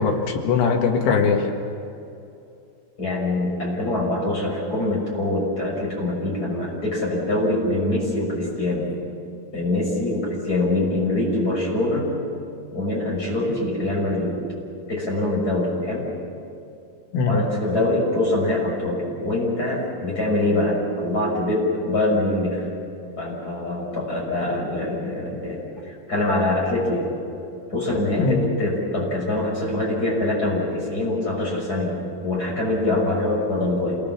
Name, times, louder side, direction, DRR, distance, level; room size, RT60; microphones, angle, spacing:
voice 1, 0.0-1.5 17.1-17.4 28.2-28.5, left 5 dB, 80° left, 3 dB, 4.1 m, -20 dB
voice 2, 3.0-8.9 9.5-12.1 12.7-14.4 14.9-16.1 17.2-22.7 23.2-25.6 25.8-27.1 27.7-34.0, left 2 dB, 20° left, -3 dB, 6.2 m, -24 dB
27.0 x 19.0 x 7.3 m, 2.7 s
omnidirectional pair, 5.4 m